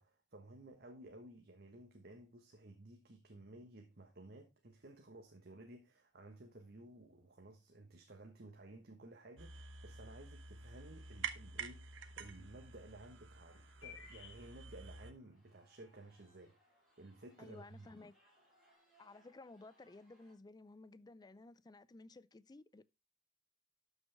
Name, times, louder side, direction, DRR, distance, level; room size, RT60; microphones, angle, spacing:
voice 1, 0.0-18.0, right 1 dB, 55° right, 1.3 m, -56 dB
sound 1, 6.1-6.7 9.9-10.0 11.1-11.2 11.5-11.8 12.3-12.4 13.1-13.2 13.4-13.6 14.0-14.5 15.0-20.4, right 1 dB, ahead, 5.6 m, -74 dB
sound 2, 9.4-15.1, right 5 dB, 85° right, 1.0 m, -49 dB
sound 3, 12.0-18.7, left 7 dB, 75° left, 2.3 m, -63 dB
voice 2, 17.4-18.2 19.0-22.8, left 2 dB, 20° left, 0.4 m, -56 dB
12.5 x 6.2 x 3.4 m
head